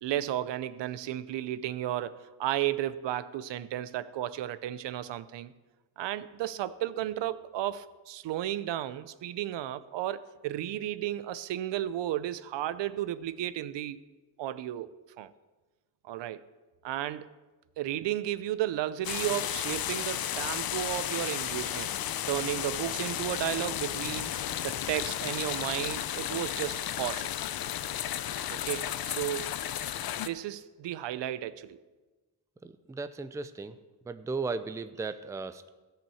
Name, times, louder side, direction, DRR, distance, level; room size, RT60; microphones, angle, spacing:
voice 1, 0.0-5.5 6.0-14.0 14.4-15.3 16.0-16.4 16.8-17.3 17.8-21.9 22.3-24.3 24.6-27.3 28.5-29.5 30.2-31.8, right 12 dB, 80° right, 0.6 m, -33 dB
sound 1, 19.0-30.3, left 11 dB, 55° left, 0.6 m, -33 dB
voice 2, 32.6-33.8 34.0-35.7, right 4 dB, 10° right, 0.4 m, -36 dB
13.5 x 5.8 x 7.0 m
cardioid pair, 110°, 43 cm